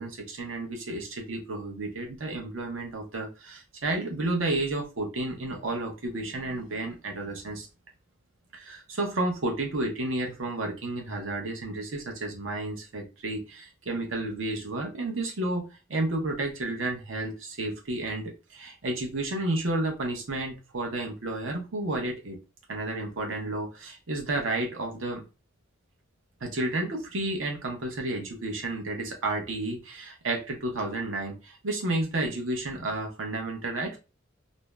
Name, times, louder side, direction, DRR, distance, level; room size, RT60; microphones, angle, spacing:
voice 1, 0.0-7.7 8.5-22.4 22.7-25.2 26.4-34.0, right 2 dB, 85° right, 0.8 m, -31 dB
2.6 x 2.1 x 3.2 m
head